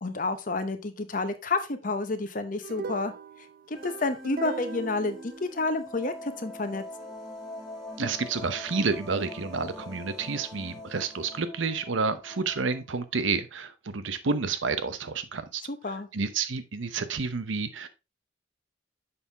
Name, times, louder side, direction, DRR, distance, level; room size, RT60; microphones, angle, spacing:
voice 1, 0.0-3.1 3.7-6.8 15.7-16.1, left 3 dB, 45° left, 0.8 m, -30 dB
sound 1, 2.6-6.0, right 5 dB, 45° right, 0.4 m, -39 dB
sound 2, 3.7-11.5, left 2 dB, ahead, 1.5 m, -47 dB
Wind instrument woodwind instrument, 5.8-13.1, left 1 dB, 25° left, 1.6 m, -45 dB
voice 2, 8.0-15.6 16.1-17.9, right 4 dB, 85° right, 0.8 m, -30 dB
6.9 x 5.6 x 3.4 m
head